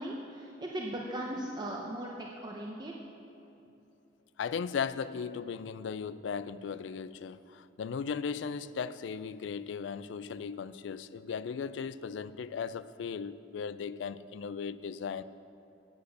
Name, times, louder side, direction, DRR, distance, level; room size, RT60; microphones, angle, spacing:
voice 1, 0.0-2.9, right 1 dB, 25° right, -1 dB, 0.7 m, -38 dB
voice 2, 4.4-15.2, left 6 dB, 85° left, 15 dB, 0.3 m, -37 dB
8.2 x 8.0 x 6.6 m, 2.8 s
head